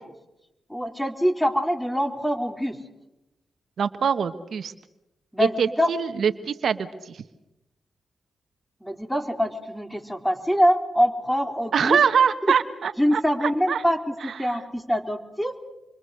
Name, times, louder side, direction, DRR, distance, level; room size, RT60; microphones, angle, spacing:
voice 1, 0.7-2.8 5.3-5.9 8.8-12.0 13.0-15.5, equal, 5° left, 5 dB, 4.0 m, -24 dB
voice 2, 3.8-4.7 5.4-7.2 11.7-13.8 14.2-14.6, right 7 dB, 70° right, 10 dB, 1.2 m, -24 dB
28.0 x 24.0 x 6.6 m, 0.95 s
supercardioid pair, 50°, 0 cm